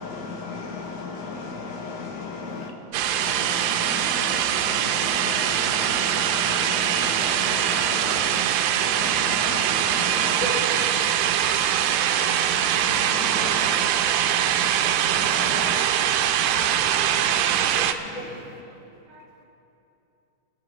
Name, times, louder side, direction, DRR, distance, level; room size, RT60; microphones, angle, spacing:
voice 1, 0.0-2.7 3.1-10.4 12.7-13.9 15.1-15.8 16.5-16.7 17.2-17.4 17.7-17.8, left 4 dB, 85° left, 1 dB, 3.1 m, -35 dB
sound 1, 2.9-17.9, right 10 dB, 90° right, 2.4 m, -23 dB
voice 2, 3.1-3.6 3.9-4.1 4.7-5.4 8.9-9.3 10.4-11.1 11.7-11.9 12.5-13.4 14.3-15.7 16.5-18.6, left 1 dB, 50° left, -4 dB, 2.9 m, -40 dB
voice 3, 18.8-19.4, right 2 dB, 45° right, -2 dB, 1.9 m, -53 dB
27.5 x 12.0 x 3.0 m, 2.7 s
omnidirectional pair, 4.1 m